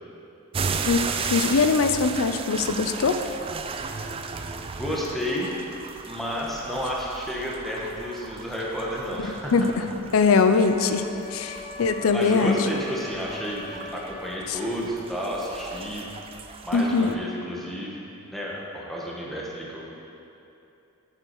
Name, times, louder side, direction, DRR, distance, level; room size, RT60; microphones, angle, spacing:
sound 1, 0.5-17.1, right 5 dB, 25° right, 0.3 m, -35 dB
voice 1, 1.3-3.2 9.5-9.9 10.1-11.1 11.3-12.7 14.5-14.6 16.7-17.2, left 4 dB, 75° left, 8 dB, 0.5 m, -21 dB
voice 2, 4.8-5.5 6.0-9.5 12.1-16.1 16.6-18.0 18.3-19.8, equal, ahead, -4 dB, 1.2 m, -31 dB
Wind instrument woodwind instrument, 10.6-14.4, left 4 dB, 30° left, 0.8 m, -41 dB
8.1 x 7.2 x 4.6 m, 2.8 s
head